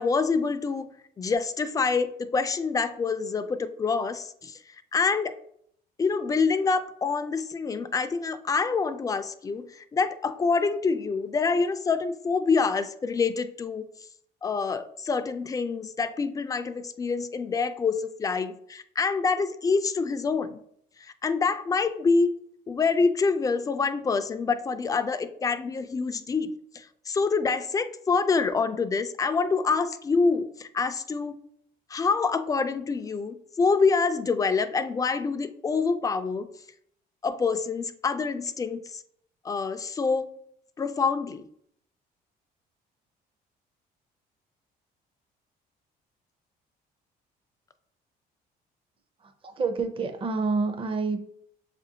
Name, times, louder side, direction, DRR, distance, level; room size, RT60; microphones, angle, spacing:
voice 1, 0.0-4.6 4.9-5.3 6.0-13.9 14.4-20.6 21.0-22.4 22.7-31.4 31.9-36.5 37.2-39.0 39.4-40.3 40.8-41.4, left 4 dB, 20° left, 10 dB, 0.3 m, -26 dB
voice 2, 49.2-51.2, right 4 dB, 30° right, 6 dB, 0.6 m, -28 dB
7.0 x 2.5 x 2.7 m, 0.68 s
cardioid pair, 110°, 17 cm